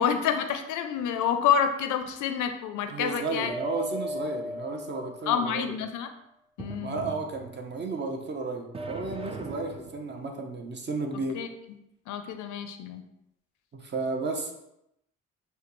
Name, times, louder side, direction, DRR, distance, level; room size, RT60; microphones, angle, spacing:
voice 1, 0.0-3.5 5.3-6.1 6.6-7.1 11.4-11.5 12.1-13.0, left 8 dB, 80° left, 8 dB, 0.5 m, -28 dB
voice 2, 2.9-5.8 6.8-11.4 13.7-14.5, right 3 dB, 35° right, 3 dB, 0.8 m, -33 dB
sound 1, 3.5-5.5 6.6-7.8 8.7-10.1, equal, 20° right, 0.4 m, -37 dB
6.4 x 2.3 x 3.0 m, 0.83 s
cardioid pair, 90°, 30 cm